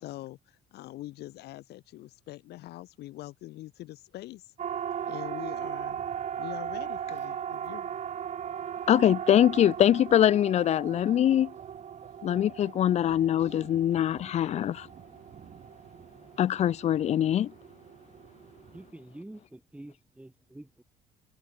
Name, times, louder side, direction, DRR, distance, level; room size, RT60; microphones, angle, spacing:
voice 1, 0.0-4.5 5.0-6.0 6.4-8.0, left 16 dB, 75° left, 1.6 m, -43 dB
Siren, 4.6-18.9, right 8 dB, 45° right, 1.3 m, -38 dB
voice 2, 8.9-11.5 12.2-14.9 16.4-17.5, left 11 dB, 40° left, 0.4 m, -23 dB
voice 3, 18.7-20.8, right 1 dB, 5° right, 5.9 m, -47 dB
cardioid pair, 110°, 17 cm